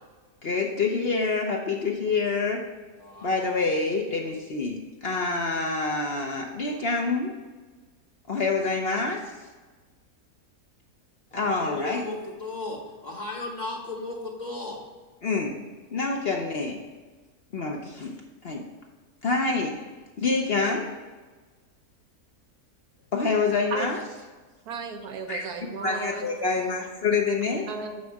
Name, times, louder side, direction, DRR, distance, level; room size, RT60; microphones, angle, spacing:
voice 1, 0.4-2.6 3.2-7.3 8.3-9.2 11.3-12.0 15.2-15.5 15.9-16.8 17.5-18.1 18.4-18.6 19.2-19.8 20.2-20.9 23.1-24.0 25.3-25.4 25.8-27.7, left 4 dB, 50° left, 1 dB, 0.8 m, -26 dB
voice 2, 3.0-3.4 11.3-14.8 26.6-26.9, left 2 dB, 30° left, 0 dB, 1.1 m, -35 dB
voice 3, 24.7-26.3 27.7-28.0, right 5 dB, 80° right, 5 dB, 1.4 m, -34 dB
6.3 x 6.1 x 4.7 m, 1.3 s
omnidirectional pair, 1.6 m